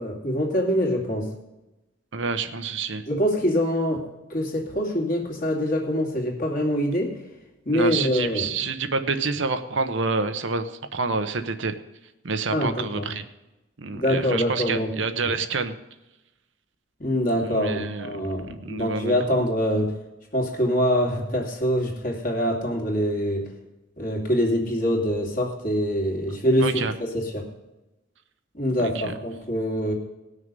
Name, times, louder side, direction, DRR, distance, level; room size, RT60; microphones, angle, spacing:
voice 1, 0.0-1.3 3.1-7.2 7.6-8.5 12.5-13.1 13.9-14.9 15.2-15.4 17.0-19.9 20.3-23.4 24.0-27.5 28.5-29.9, equal, 45° left, 1 dB, 2.5 m, -24 dB
voice 2, 2.1-3.0 7.7-11.7 12.2-13.2 13.8-15.7 17.4-18.1 18.5-19.2 26.6-26.9 28.8-29.1, right 4 dB, 70° right, 9 dB, 0.9 m, -28 dB
18.5 x 6.5 x 5.3 m, 0.99 s
head